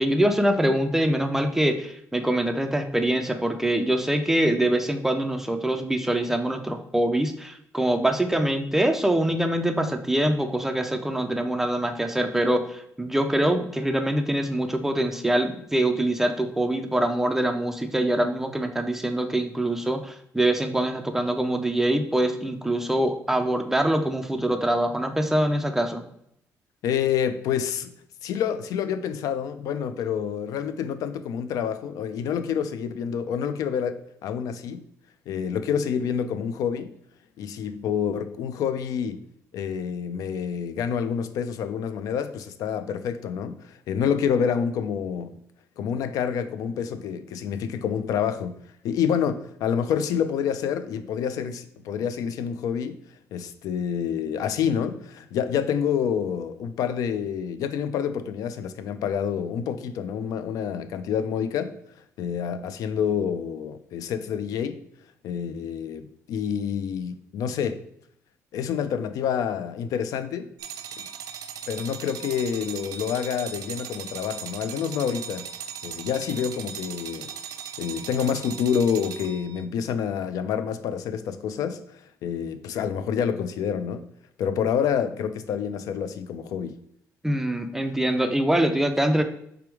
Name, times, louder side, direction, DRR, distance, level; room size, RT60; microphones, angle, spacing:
voice 1, 0.0-26.0 87.2-89.2, right 1 dB, 5° right, 0.3 m, -24 dB
voice 2, 26.8-27.9 28.2-34.9 35.3-36.9 37.4-39.2 39.5-45.4 45.8-48.5 48.8-53.0 53.3-61.8 62.2-64.8 65.2-67.8 68.5-70.5 71.0-71.1 71.7-75.5 75.8-77.3 77.8-84.0 84.4-86.8, left 8 dB, 75° left, 0.4 m, -28 dB
sound 1, 70.6-79.6, right 8 dB, 80° right, 0.4 m, -38 dB
3.4 x 3.4 x 4.6 m
cardioid pair, 175°, 6 cm